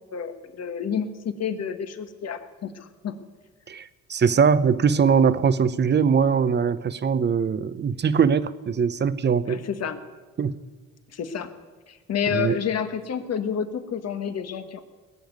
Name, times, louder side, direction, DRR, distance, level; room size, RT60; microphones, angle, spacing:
voice 1, 0.1-3.1 9.5-10.0 11.1-11.5 11.9-14.8, left 7 dB, 55° left, 8 dB, 1.6 m, -29 dB
voice 2, 3.7-9.6 10.4-10.6 12.3-12.6, right 6 dB, 35° right, 14 dB, 0.8 m, -21 dB
20.5 x 7.0 x 9.4 m, 1.4 s
cardioid pair, 90°, 30 cm